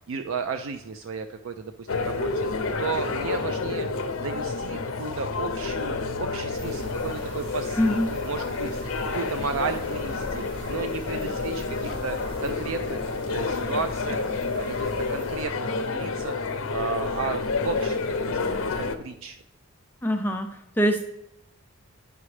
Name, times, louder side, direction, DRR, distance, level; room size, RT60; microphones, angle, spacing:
voice 1, 0.1-8.7 9.0-14.2 14.6-16.4 16.7-18.7 19.0-19.4, right 5 dB, 65° right, 8 dB, 0.4 m, -34 dB
sound 1, 1.9-18.9, left 4 dB, 60° left, 0.6 m, -29 dB
sound 2, 6.5-15.4, left 1 dB, 50° right, 1.7 m, -40 dB
voice 2, 7.8-8.1 20.0-20.5 20.8-21.0, equal, 10° left, 4 dB, 0.4 m, -23 dB
9.7 x 5.9 x 3.2 m, 0.81 s
head